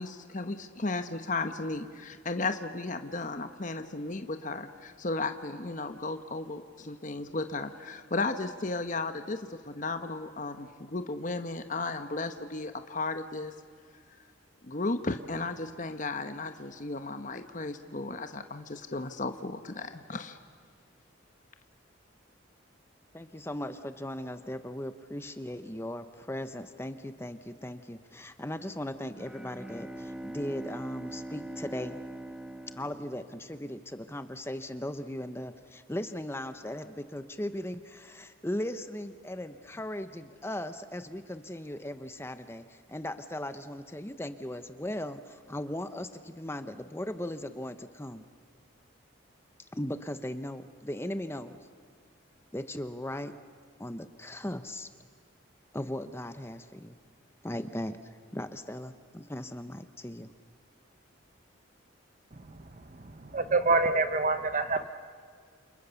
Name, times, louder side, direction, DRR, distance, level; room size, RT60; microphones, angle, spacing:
voice 1, 0.0-13.5 14.6-20.4, left 3 dB, 40° left, 8 dB, 1.0 m, -35 dB
voice 2, 23.1-32.0 32.8-48.3 49.6-51.6 52.5-53.3 53.8-54.9 55.7-57.0 57.4-60.3, left 1 dB, 10° left, 10 dB, 0.7 m, -38 dB
Bowed string instrument, 29.1-33.9, right 1 dB, 5° right, 1.1 m, -42 dB
voice 3, 62.3-64.9, right 3 dB, 40° right, 9 dB, 0.8 m, -28 dB
29.0 x 28.0 x 7.0 m, 2.1 s
head